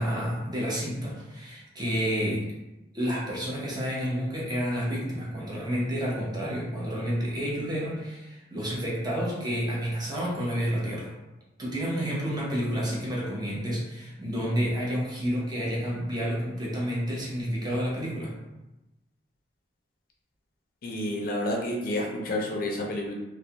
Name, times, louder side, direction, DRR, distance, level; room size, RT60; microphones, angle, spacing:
voice 1, 0.0-2.5 2.9-11.1 11.6-18.3, equal, 25° right, -5 dB, 0.6 m, -30 dB
voice 2, 20.8-23.1, left 1 dB, 55° left, -1 dB, 0.4 m, -30 dB
2.3 x 2.0 x 2.7 m, 1.0 s
head